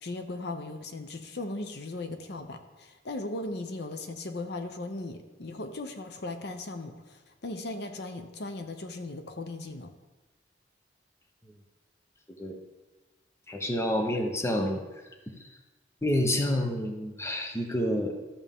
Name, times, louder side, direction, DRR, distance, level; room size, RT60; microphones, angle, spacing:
voice 1, 0.0-9.9, left 2 dB, 65° left, 7 dB, 0.8 m, -37 dB
voice 2, 13.5-14.8 16.0-18.1, left 1 dB, 15° left, 4 dB, 0.9 m, -28 dB
13.5 x 7.0 x 3.6 m, 1.2 s
head